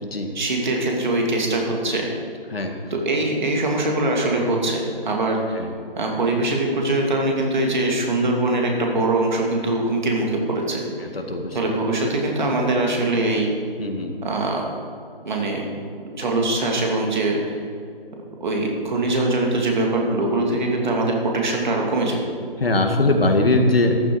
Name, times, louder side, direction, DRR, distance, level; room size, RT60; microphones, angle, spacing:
voice 1, 0.3-2.1 2.9-5.4 6.0-10.8 11.5-13.5 14.2-14.7 15.2-15.7 16.0-17.6 18.4-22.2, right 2 dB, 50° right, 0 dB, 2.7 m, -22 dB
voice 2, 11.0-11.6 13.8-14.2 22.6-23.9, left 2 dB, 80° left, 3 dB, 2.1 m, -21 dB
14.0 x 11.0 x 4.9 m, 2.3 s
figure-of-eight pair, 155°, 29 cm